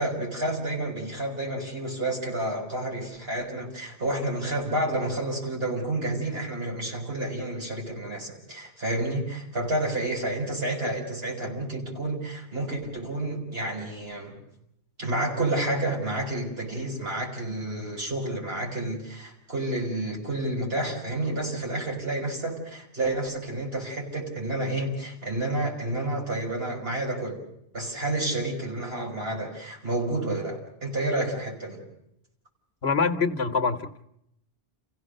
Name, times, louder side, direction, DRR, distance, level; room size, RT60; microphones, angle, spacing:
voice 1, 0.0-14.4 15.0-27.4 27.7-31.8, right 1 dB, 60° right, -1 dB, 5.8 m, -30 dB
voice 2, 32.8-34.0, left 5 dB, 70° left, 8 dB, 1.4 m, -25 dB
29.5 x 16.5 x 6.6 m, 0.79 s
omnidirectional pair, 1.1 m